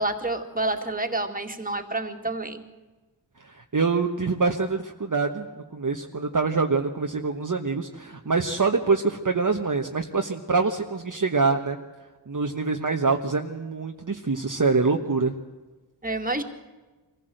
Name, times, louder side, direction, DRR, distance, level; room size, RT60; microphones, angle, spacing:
voice 1, 0.0-2.6 16.0-16.4, right 2 dB, 20° right, 5 dB, 2.2 m, -28 dB
voice 2, 3.6-5.4 5.7-11.8 12.3-15.3, right 4 dB, 45° right, 3 dB, 1.2 m, -25 dB
24.0 x 15.5 x 7.8 m, 1.2 s
wide cardioid pair, 50°, 45 cm